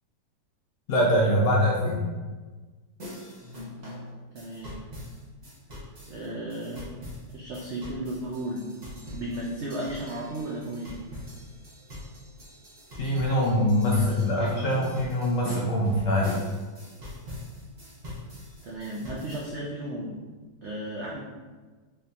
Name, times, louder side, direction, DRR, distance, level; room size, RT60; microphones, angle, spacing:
voice 1, 0.9-2.0 13.0-16.3, equal, 65° left, -3 dB, 0.8 m, -23 dB
sound 1, 3.0-19.5, left 1 dB, 35° right, 0.7 m, -42 dB
voice 2, 4.3-4.8 6.1-7.0 7.3-8.7 9.1-10.9 13.9-14.8 18.6-20.2 20.6-21.2, right 1 dB, 85° right, -4 dB, 0.6 m, -35 dB
3.7 x 2.7 x 3.4 m, 1.3 s
omnidirectional pair, 1.8 m